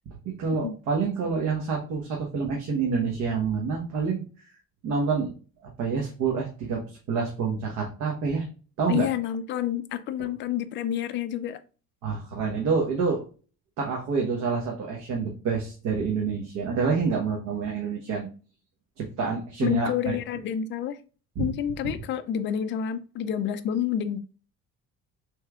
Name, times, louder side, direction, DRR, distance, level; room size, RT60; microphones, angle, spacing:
voice 1, 0.2-4.2 4.8-5.3 5.6-6.8 7.1-8.5 8.8-9.1 12.0-13.2 13.8-18.3 19.0-20.2 21.4-21.5, right 5 dB, 65° right, 1.1 m, -27 dB
voice 2, 8.9-11.6 19.6-21.0 21.4-24.2, left 10 dB, 40° left, 0.4 m, -29 dB
6.4 x 3.2 x 2.3 m
cardioid pair, 155°, 30 cm